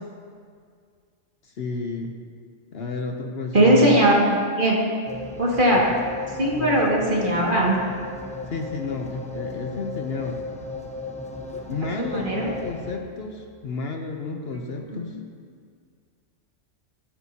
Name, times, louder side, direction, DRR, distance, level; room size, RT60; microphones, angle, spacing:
voice 1, 1.4-2.1 2.7-4.0 5.7-5.8 6.4-6.8 8.5-10.4 11.7-15.2, left 3 dB, 55° left, 3 dB, 0.9 m, -31 dB
voice 2, 3.5-4.8 5.4-5.8 6.4-7.8 12.0-12.5 14.8-15.0, right 1 dB, 40° right, -4 dB, 2.1 m, -19 dB
sound 1, 5.1-13.0, left 3 dB, 5° left, 0.8 m, -35 dB
13.5 x 12.5 x 2.8 m, 2.1 s
omnidirectional pair, 1.3 m